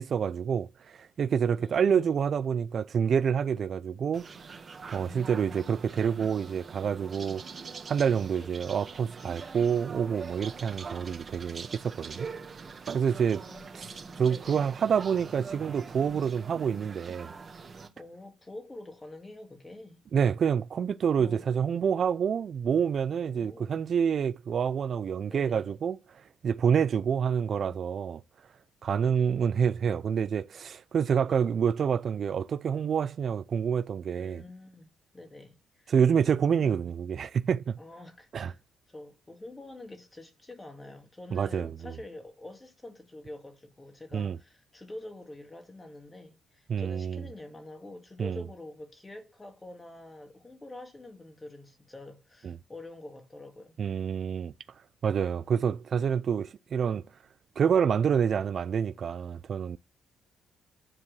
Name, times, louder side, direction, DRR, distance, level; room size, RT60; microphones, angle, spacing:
voice 1, 0.0-4.5 4.9-7.4 7.9-12.3 12.9-13.4 13.7-17.3 20.1-26.0 26.4-28.2 28.8-34.4 35.9-37.8 38.3-38.5 41.3-41.9 44.1-44.4 46.7-47.2 48.2-48.4 52.4-52.6 53.8-54.5 55.0-57.0 57.6-59.8, right 7 dB, 55° right, 0.4 m, -27 dB
voice 2, 1.6-2.1 5.0-5.7 8.4-8.5 11.0-11.1 13.3-14.6 17.9-20.1 21.2-21.5 23.2-23.8 25.2-25.7 27.4-27.8 29.0-29.4 31.3-31.4 34.2-35.9 36.6-36.8 37.8-38.6 38.9-53.8, left 2 dB, 20° left, 2.1 m, -47 dB
sound 1, 4.1-17.9, right 5 dB, 40° right, 2.0 m, -43 dB
9.9 x 4.5 x 6.5 m
cardioid pair, 90°, 0 cm